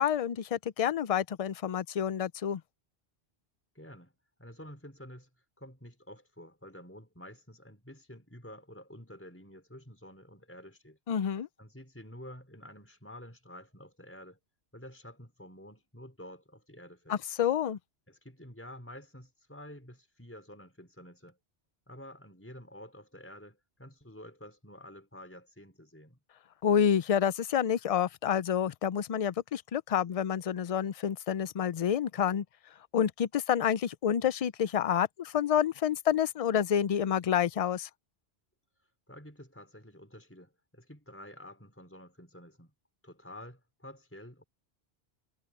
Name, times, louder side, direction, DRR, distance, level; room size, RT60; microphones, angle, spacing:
voice 1, 0.0-2.6 11.1-11.5 17.1-17.8 26.6-32.4 32.9-37.9, left 9 dB, 50° left, 0.4 m, -28 dB
voice 2, 3.7-4.1 4.4-5.3 5.6-11.0 11.6-14.4 14.7-17.2 18.1-21.4 21.9-26.2 39.1-42.7 43.0-44.4, left 1 dB, 10° left, 5.0 m, -49 dB
omnidirectional pair, 1.1 m